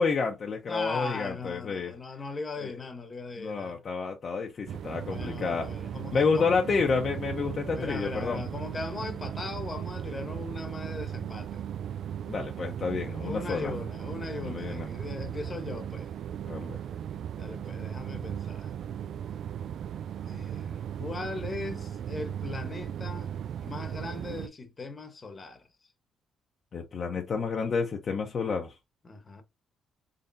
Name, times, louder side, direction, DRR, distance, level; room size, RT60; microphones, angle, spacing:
voice 1, 0.0-1.9 2.6-2.8 3.4-5.7 6.1-8.4 12.3-13.7 14.4-14.9 16.5-16.8 26.7-28.8, left 5 dB, 50° left, 0.7 m, -29 dB
voice 2, 0.7-3.8 5.1-6.5 7.7-11.6 13.2-16.1 17.4-18.7 20.3-23.3 23.6-25.6 29.0-29.4, left 3 dB, 30° left, 1.0 m, -39 dB
sound 1, 4.7-24.5, right 9 dB, 65° right, 0.3 m, -37 dB
3.9 x 3.2 x 2.6 m
cardioid pair, 90°, 0 cm